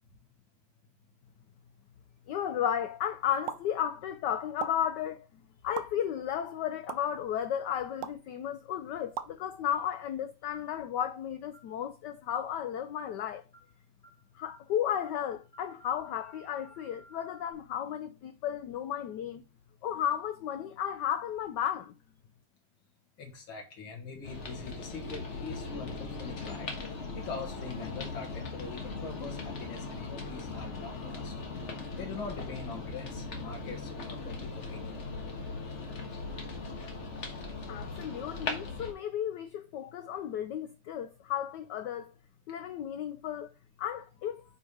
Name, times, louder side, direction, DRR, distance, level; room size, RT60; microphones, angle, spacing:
voice 1, 2.3-5.3 5.6-13.4 14.3-19.4 19.8-21.9 37.7-42.1 42.5-43.5 43.8-44.4, left 9 dB, 85° left, 0.9 m, -34 dB
sound 1, 3.5-3.6 4.6-4.7 5.7-5.8 6.9-7.0 8.0-8.2 9.2-9.3, right 10 dB, 70° right, 1.1 m, -36 dB
sound 2, 10.5-10.8 11.5-11.7 12.5-12.8 13.5-13.7 14.0-14.2 14.5-14.7 15.0-17.5, right 1 dB, 20° left, 2.8 m, -57 dB
voice 2, 23.2-26.7 27.2-31.5 32.0-34.9, left 5 dB, 65° left, 2.4 m, -43 dB
sound 3, 24.2-38.9, left 3 dB, 40° left, 1.2 m, -39 dB
5.3 x 4.6 x 4.8 m
omnidirectional pair, 2.4 m